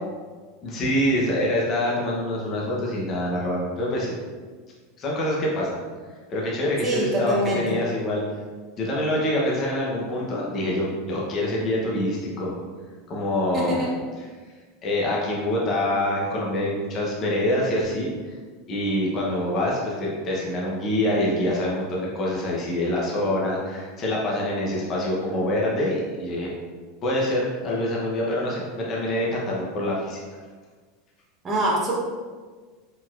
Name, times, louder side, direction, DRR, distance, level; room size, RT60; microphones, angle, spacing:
voice 1, 0.6-4.2 5.0-5.8 6.3-8.2 8.8-12.6 13.1-13.9 14.2-14.3 14.8-18.1 18.7-26.5 27.0-30.2, left 1 dB, 30° left, -4 dB, 0.7 m, -25 dB
voice 2, 6.8-7.6 13.5-13.9 31.4-31.9, right 1 dB, 20° right, -4 dB, 0.9 m, -24 dB
4.4 x 4.0 x 2.4 m, 1.5 s
supercardioid pair, 160°, 0 cm